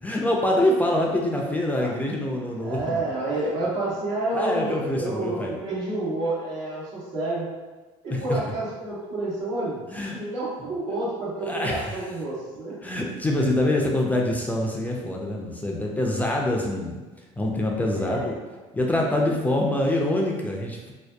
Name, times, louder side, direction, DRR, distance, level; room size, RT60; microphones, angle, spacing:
voice 1, 0.0-3.0 4.3-5.6 8.1-8.4 9.9-10.2 11.4-12.0 12.8-17.0 17.4-18.4 18.7-20.9, left 1 dB, 10° left, -1 dB, 0.3 m, -25 dB
voice 2, 2.6-7.4 8.0-9.8 10.1-12.8 17.9-18.3, right 2 dB, 70° right, -7 dB, 1.1 m, -29 dB
2.6 x 2.2 x 2.2 m, 1.2 s
supercardioid pair, 85°, 13 cm